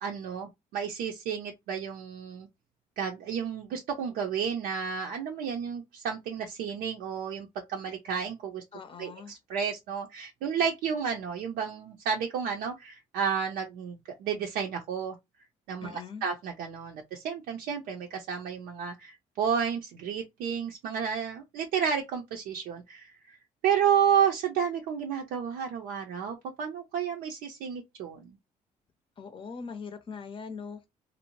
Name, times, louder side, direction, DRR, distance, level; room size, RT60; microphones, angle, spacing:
voice 1, 0.0-2.5 3.0-8.6 9.0-15.1 15.7-23.4 23.6-28.4, right 7 dB, 85° right, 0.5 m, -31 dB
voice 2, 8.7-9.3 15.8-16.2 29.2-30.9, left 5 dB, 35° left, 0.6 m, -41 dB
2.6 x 2.0 x 2.9 m
supercardioid pair, 70°, 15 cm